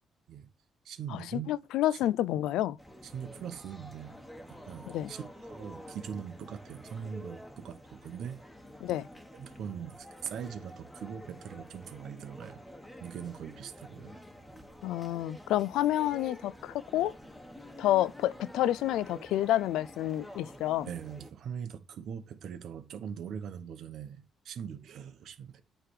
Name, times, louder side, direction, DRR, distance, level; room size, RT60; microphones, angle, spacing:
voice 1, 0.8-1.5 1.9-2.0 3.0-4.2 4.5-8.4 9.3-12.6 13.0-14.2 14.5-14.6 20.8-25.6, right 8 dB, 70° right, 1.0 m, -41 dB
voice 2, 1.5-2.8 4.9-5.1 8.8-9.1 14.8-17.1 17.8-20.9, left 13 dB, 90° left, 0.3 m, -29 dB
sound 1, 2.8-21.3, equal, 5° left, 1.4 m, -49 dB
9.0 x 3.4 x 4.7 m
cardioid pair, 90°, 0 cm